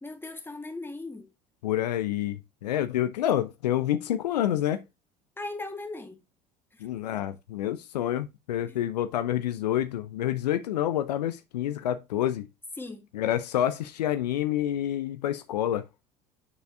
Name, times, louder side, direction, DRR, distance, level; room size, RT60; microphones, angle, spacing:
voice 1, 0.0-1.3 5.4-6.2 6.7-6.8 8.7-8.8 12.8-13.0, left 2 dB, 10° left, 1.9 m, -38 dB
voice 2, 1.6-4.8 6.8-12.5 13.1-15.8, left 11 dB, 75° left, 0.7 m, -28 dB
7.0 x 6.7 x 2.5 m
figure-of-eight pair, 70°, 21 cm